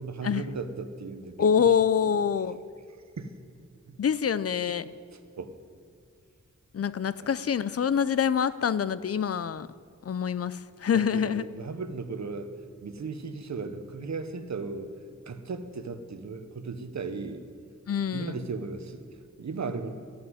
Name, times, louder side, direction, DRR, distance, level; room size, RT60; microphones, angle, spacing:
voice 1, 0.0-1.7 2.0-2.2 3.2-3.4 3.9-4.0 5.1-5.6 7.2-7.4 10.9-12.5 12.8-14.9 15.3-17.4 18.1-19.9, right 4 dB, 65° right, 9 dB, 0.9 m, -36 dB
voice 2, 1.4-2.6 4.0-4.9 6.7-9.7 10.0-11.5 17.9-18.3, left 7 dB, 50° left, 16 dB, 0.5 m, -26 dB
14.0 x 6.1 x 9.4 m, 2.3 s
wide cardioid pair, 85°, 30 cm